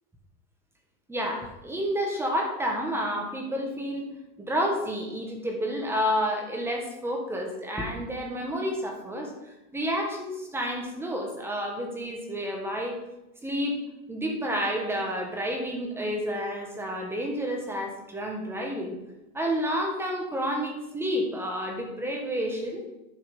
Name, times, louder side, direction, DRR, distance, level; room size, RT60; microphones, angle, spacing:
voice 1, 1.1-4.0 4.4-9.3 9.7-13.0 13.4-13.8 14.1-18.9 19.3-22.8, equal, 5° right, 1 dB, 1.6 m, -30 dB
11.0 x 5.9 x 5.4 m, 0.96 s
supercardioid pair, 150°, 43 cm